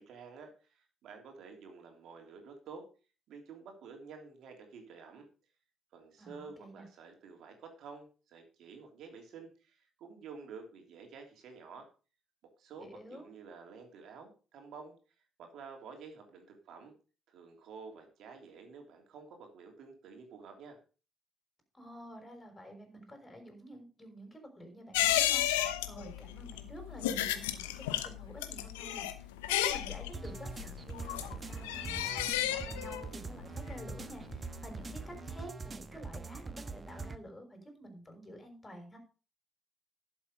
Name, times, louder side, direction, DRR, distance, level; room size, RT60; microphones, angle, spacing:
voice 1, 0.0-2.9 3.3-5.3 5.9-11.9 12.6-14.9 15.4-16.9 17.3-20.8, right 5 dB, 65° right, 4 dB, 3.2 m, -50 dB
voice 2, 6.2-6.9 12.8-13.3 21.7-39.0, equal, 25° left, 5 dB, 5.6 m, -50 dB
sound 1, 24.9-34.9 35.2-35.3, left 13 dB, 85° left, 0.8 m, -33 dB
sound 2, 30.1-37.2, right 4 dB, 35° right, 1.2 m, -43 dB
11.5 x 7.5 x 5.2 m, 0.35 s
hypercardioid pair, 45°, 0 cm